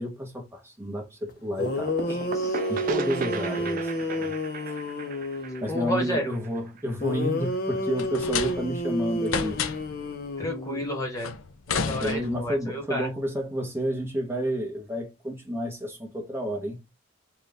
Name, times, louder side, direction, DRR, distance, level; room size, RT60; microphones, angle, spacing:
voice 1, 0.0-2.2 2.7-4.3 5.6-9.6 11.9-16.8, equal, 10° right, 1.2 m, -30 dB
Moaning Ghost, 1.3-1.4 1.6-5.7 7.0-11.0, left 1 dB, 45° left, 0.8 m, -30 dB
sound 1, 1.7-7.2, right 5 dB, 45° right, 0.4 m, -36 dB
voice 2, 2.1-2.6 5.7-6.3 10.4-11.3 11.7-13.1, equal, 15° left, 1.4 m, -31 dB
sound 2, 8.0-8.9 9.3-10.0 11.2-12.6, left 6 dB, 85° left, 0.6 m, -31 dB
4.2 x 2.5 x 3.5 m
head